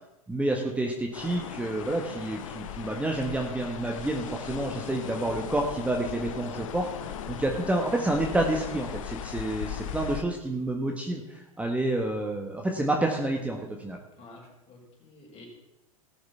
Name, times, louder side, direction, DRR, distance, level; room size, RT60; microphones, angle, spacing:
voice 1, 0.3-14.0, right 2 dB, 5° right, 1 dB, 1.6 m, -29 dB
sound 1, 1.1-10.2, left 9 dB, 65° left, 1.0 m, -38 dB
voice 2, 14.2-15.5, left 2 dB, 35° left, 0 dB, 4.9 m, -50 dB
18.0 x 6.6 x 5.7 m, 0.91 s
hypercardioid pair, 95°, 18 cm